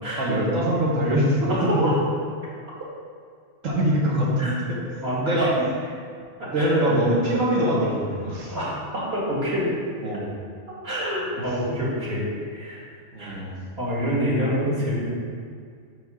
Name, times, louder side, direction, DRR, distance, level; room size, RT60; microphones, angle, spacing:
voice 1, 0.2-1.9 3.6-4.8 5.2-5.5 6.5-8.6 10.0-10.3 11.3-11.4 13.1-13.5, right 1 dB, 90° right, -4 dB, 1.9 m, -23 dB
voice 2, 1.5-1.9 4.4-4.5 5.0-5.5 6.4-6.9 8.5-9.7 10.8-12.8 13.2-13.4 13.8-15.1, equal, 55° right, -7 dB, 2.3 m, -27 dB
5.5 x 4.9 x 6.2 m, 2.2 s
omnidirectional pair, 1.3 m